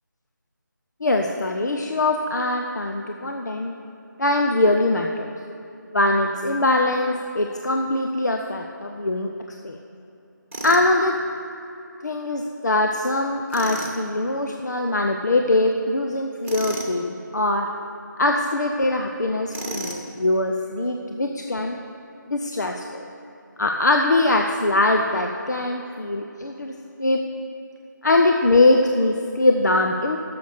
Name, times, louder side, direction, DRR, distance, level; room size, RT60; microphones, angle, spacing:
voice 1, 1.0-3.7 4.2-5.3 5.9-9.3 9.6-9.8 10.6-11.1 12.0-17.7 18.2-21.8 22.3-23.0 23.6-26.7 27.0-27.2 28.0-30.2, left 2 dB, 60° left, 3 dB, 0.7 m, -22 dB
Tools, 10.5-10.9 13.5-14.0 16.4-16.9 19.5-20.1, right 2 dB, 40° right, 1.6 m, -32 dB
10.5 x 6.9 x 6.6 m, 2.9 s
figure-of-eight pair, 170°, 11 cm